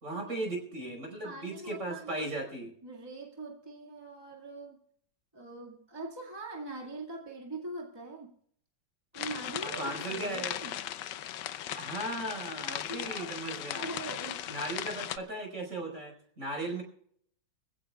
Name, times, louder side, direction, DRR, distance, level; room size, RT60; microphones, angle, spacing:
voice 1, 0.0-2.7 9.6-10.6 11.7-13.9 14.5-16.8, right 1 dB, 45° right, 2 dB, 5.4 m, -37 dB
voice 2, 1.2-2.2 2.8-4.8 5.3-8.4 9.1-10.8 12.9-13.3 13.6-14.7, right 2 dB, 15° right, -1 dB, 2.0 m, -43 dB
sound 1, 9.2-15.2, left 11 dB, 85° left, 1.4 m, -38 dB
25.0 x 16.0 x 2.3 m, 0.65 s
omnidirectional pair, 1.9 m